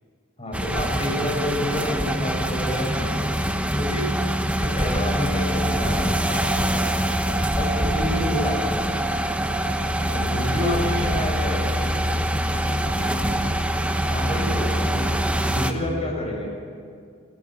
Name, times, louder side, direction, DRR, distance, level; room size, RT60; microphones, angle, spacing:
voice 1, 0.4-3.3 3.7-4.1 4.5-6.8 7.6-8.8 10.1-11.6 14.1-15.0 15.5-16.5, left 1 dB, 30° left, 0 dB, 6.4 m, -29 dB
sound 1, 0.5-15.7, right 1 dB, 5° right, 1.1 m, -24 dB
voice 2, 7.4-7.9 10.6-13.7, right 2 dB, 75° right, 2 dB, 4.5 m, -41 dB
29.5 x 14.0 x 8.9 m, 2.3 s
head